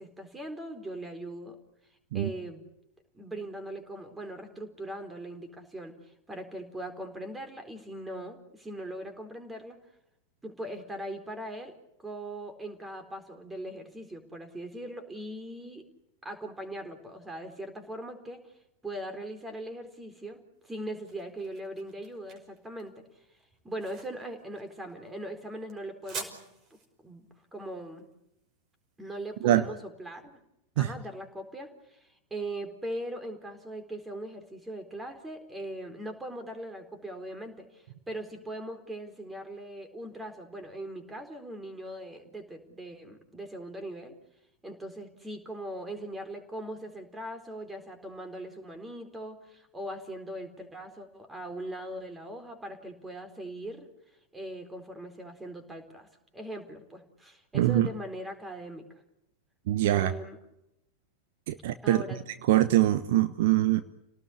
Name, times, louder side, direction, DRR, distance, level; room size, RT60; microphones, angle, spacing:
voice 1, 0.0-1.6 2.1-2.6 3.1-6.0 6.3-9.8 10.4-11.8 12.0-15.9 16.2-18.4 18.8-23.0 23.6-26.4 27.0-27.2 27.5-28.1 29.0-30.3 30.8-44.2 44.6-53.9 54.3-56.1 56.3-58.9 59.8-60.4 61.8-62.2, right 1 dB, 10° right, 7 dB, 4.2 m, -40 dB
sound 1, 20.6-29.6, right 4 dB, 30° right, 5.7 m, -47 dB
voice 2, 57.5-57.9 59.7-60.1 61.5-62.0 62.5-63.8, right 14 dB, 55° right, 11 dB, 1.1 m, -23 dB
30.0 x 18.5 x 8.7 m, 0.85 s
figure-of-eight pair, 90°, 0 cm